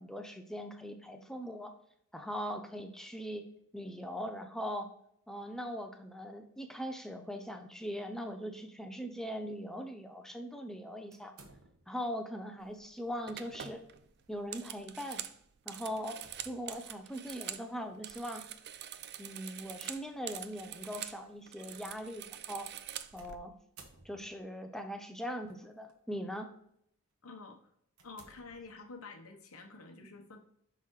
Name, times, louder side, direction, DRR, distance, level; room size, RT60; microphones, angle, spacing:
voice 1, 0.0-1.7 2.1-3.4 3.7-4.9 5.3-11.3 11.9-13.8 14.3-15.2 15.7-16.2 16.4-18.5 19.2-22.7 23.1-23.5 24.0-26.5, equal, ahead, 6 dB, 0.5 m, -40 dB
sound 1, 11.1-12.1 13.4-13.7 14.2-14.3 15.9-16.8 18.9-19.2 20.0-20.1 23.2-24.6 25.5-25.9 26.5-26.7 27.2-27.3 27.9-29.1, right 4 dB, 80° right, 1.2 m, -59 dB
sound 2, 12.6-12.9 13.3-17.7 17.9-21.2 21.5-23.4, right 11 dB, 50° right, 0.4 m, -45 dB
voice 2, 27.2-27.6 28.0-30.4, left 4 dB, 75° left, 4 dB, 1.0 m, -49 dB
6.0 x 5.5 x 3.1 m, 0.71 s
head